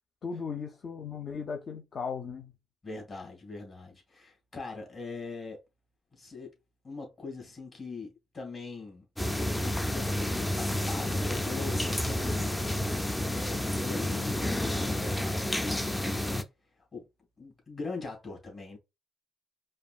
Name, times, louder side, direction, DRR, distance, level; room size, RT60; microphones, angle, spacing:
voice 1, 0.2-2.5, left 6 dB, 50° left, 0.7 m, -37 dB
voice 2, 2.8-5.6 6.1-6.5 6.8-9.0 9.4-12.6 12.8-16.2 16.9-17.0 17.4-18.8, left 3 dB, 35° left, 2.3 m, -42 dB
sound 1, 9.2-16.4, left 1 dB, 10° left, 0.5 m, -30 dB
5.0 x 2.4 x 2.4 m
cardioid pair, 90°, 0 cm